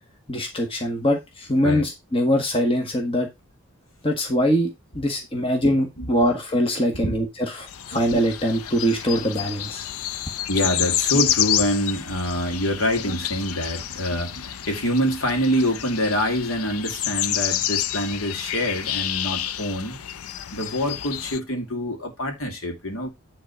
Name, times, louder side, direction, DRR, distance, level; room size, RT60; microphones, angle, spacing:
voice 1, 0.3-3.3 4.0-7.3 7.5-9.9, equal, 25° left, 1.5 m, -23 dB
sound 1, 7.7-21.4, left 11 dB, 85° left, 0.5 m, -29 dB
voice 2, 10.5-20.0 20.5-23.1, equal, 65° left, 2.5 m, -25 dB
9.9 x 3.9 x 5.7 m
head